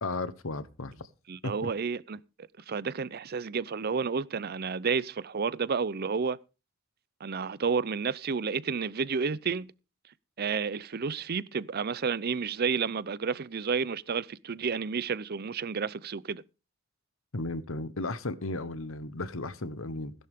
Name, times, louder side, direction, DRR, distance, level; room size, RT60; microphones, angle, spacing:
voice 1, 0.0-1.0 1.4-1.7 17.3-20.1, left 2 dB, 85° left, 1.1 m, -35 dB
voice 2, 1.3-2.2 2.7-6.4 7.2-9.7 10.4-16.4, right 5 dB, 50° right, 0.6 m, -31 dB
17.0 x 11.5 x 3.7 m
head